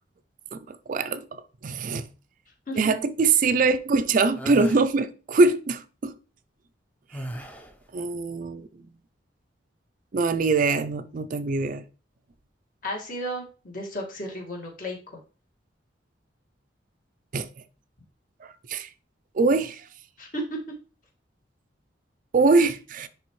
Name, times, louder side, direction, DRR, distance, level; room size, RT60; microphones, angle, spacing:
voice 1, 0.5-2.1 2.8-6.1 7.9-8.7 10.1-11.8 17.3-17.5 18.4-18.9 19.3-19.9 22.3-23.1, right 3 dB, 45° right, 0.4 m, -23 dB
sound 1, 4.3-4.9 7.1-7.8, right 1 dB, 10° left, 0.6 m, -36 dB
voice 2, 12.8-15.2 20.2-20.6, equal, 45° left, 1.9 m, -34 dB
10.0 x 3.5 x 3.1 m
head